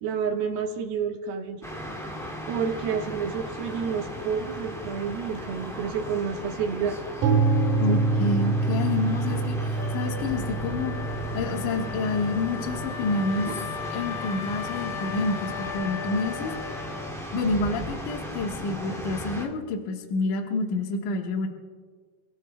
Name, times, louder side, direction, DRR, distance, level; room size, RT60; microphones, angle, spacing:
voice 1, 0.0-1.6 2.5-7.0 7.9-8.0 13.5-13.6, right 6 dB, 75° right, 3 dB, 3.1 m, -29 dB
sound 1, 1.6-19.4, equal, ahead, 1.0 m, -37 dB
sound 2, 7.2-15.1, right 3 dB, 55° right, 3.0 m, -27 dB
voice 2, 7.8-10.9 11.3-13.5 13.9-16.5 17.3-21.5, left 3 dB, 60° left, 1 dB, 2.5 m, -28 dB
Wind instrument woodwind instrument, 9.7-17.3, left 10 dB, 80° left, 2.6 m, -38 dB
28.5 x 17.0 x 2.3 m, 1.5 s
omnidirectional pair, 4.8 m